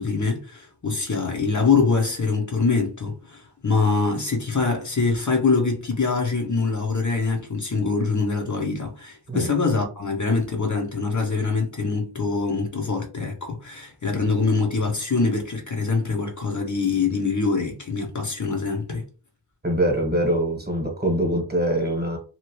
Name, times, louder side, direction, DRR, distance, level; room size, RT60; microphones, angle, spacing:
voice 1, 0.0-19.0, left 4 dB, 40° left, 0.8 m, -24 dB
voice 2, 19.6-22.2, right 1 dB, 20° right, 1.1 m, -23 dB
2.9 x 2.4 x 3.0 m
wide cardioid pair, 75°, 44 cm